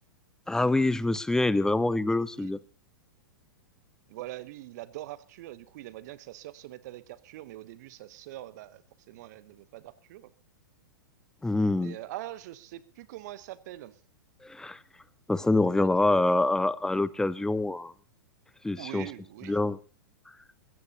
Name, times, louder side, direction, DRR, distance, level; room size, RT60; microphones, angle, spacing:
voice 1, 0.5-2.6 11.4-12.0 14.4-14.8 15.3-17.9 18.6-19.1 19.5-19.8, left 2 dB, 5° left, 18 dB, 0.6 m, -25 dB
voice 2, 4.1-8.8 9.1-10.3 11.7-14.0 15.8-16.4 18.8-19.6, right 15 dB, 50° right, 16 dB, 0.9 m, -43 dB
22.0 x 16.0 x 2.8 m, 0.36 s
figure-of-eight pair, 105°, 12 cm